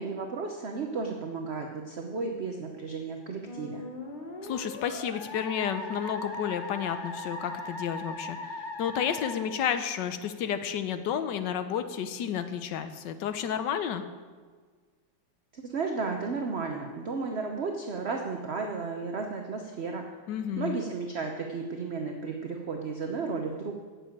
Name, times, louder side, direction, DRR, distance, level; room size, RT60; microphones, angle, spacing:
voice 1, 0.0-3.8 15.5-20.0 20.6-23.7, right 4 dB, 45° right, 3 dB, 0.9 m, -33 dB
Musical instrument, 3.5-10.3, left 2 dB, 25° left, 1.4 m, -39 dB
voice 2, 4.4-14.0 20.3-20.8, left 8 dB, 70° left, 10 dB, 1.4 m, -31 dB
10.0 x 7.4 x 8.8 m, 1.5 s
omnidirectional pair, 2.1 m